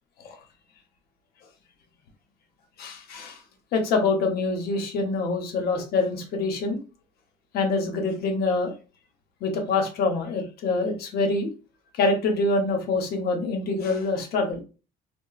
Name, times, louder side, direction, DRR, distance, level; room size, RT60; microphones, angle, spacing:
voice 1, 2.8-3.4 3.7-6.8 7.5-8.7 9.4-11.5 11.9-14.6, left 3 dB, 70° left, 4 dB, 0.8 m, -25 dB
2.8 x 2.0 x 2.3 m, 0.33 s
cardioid pair, 110°, 17 cm